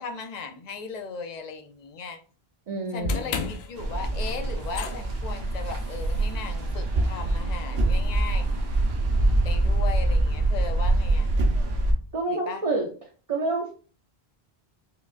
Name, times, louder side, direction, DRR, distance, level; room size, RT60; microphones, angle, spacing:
voice 1, 0.0-2.2 2.9-3.4 3.7-8.5 9.4-11.3 12.3-12.6, left 4 dB, 55° left, 6 dB, 0.5 m, -37 dB
voice 2, 2.7-3.5 12.1-12.9 13.3-13.7, right 2 dB, 45° right, -1 dB, 0.6 m, -28 dB
sound 1, 3.0-9.3, left 3 dB, 80° left, 0.8 m, -37 dB
sound 2, 3.8-11.9, right 2 dB, 70° right, 0.9 m, -24 dB
4.7 x 2.3 x 2.5 m, 0.40 s
omnidirectional pair, 1.1 m